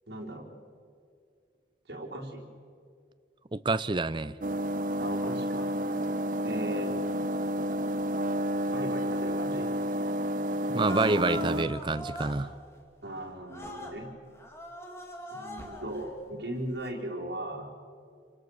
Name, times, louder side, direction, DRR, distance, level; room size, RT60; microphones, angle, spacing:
voice 1, 0.1-0.5 1.9-2.5 5.0-5.7 6.4-6.9 8.6-9.7 13.0-14.1 15.3-17.7, right 1 dB, 65° right, -2 dB, 4.4 m, -37 dB
voice 2, 3.5-4.4 10.7-12.5, right 3 dB, 25° right, 14 dB, 0.5 m, -28 dB
sound 1, 4.4-11.6, equal, 45° right, 0.8 m, -30 dB
sound 2, 10.9-12.4 13.5-14.0 14.3-16.0 16.7-16.9, equal, 15° left, 2.6 m, -41 dB
27.5 x 24.5 x 6.5 m, 2.3 s
head